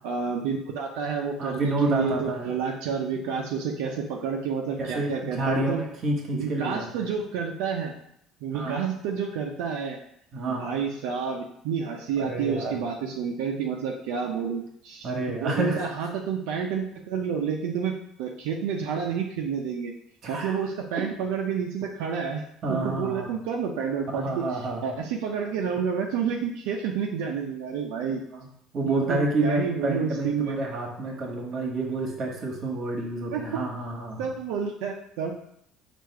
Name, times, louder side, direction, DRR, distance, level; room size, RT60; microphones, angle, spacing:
voice 1, 0.0-5.8 6.3-7.9 8.4-10.0 10.5-15.1 15.4-19.9 20.3-22.4 22.7-28.2 28.8-30.6 33.3-33.6 34.2-35.3, right 6 dB, 90° right, 0 dB, 0.5 m, -29 dB
voice 2, 1.4-2.5 4.8-7.1 8.5-8.8 10.3-10.7 12.2-12.8 15.0-15.9 20.2-20.6 22.6-23.3 24.1-24.8 26.3-26.4 28.3-28.5 28.7-34.3, right 2 dB, 45° right, 1 dB, 1.2 m, -29 dB
4.7 x 2.5 x 4.6 m, 0.72 s
cardioid pair, 110°, 0 cm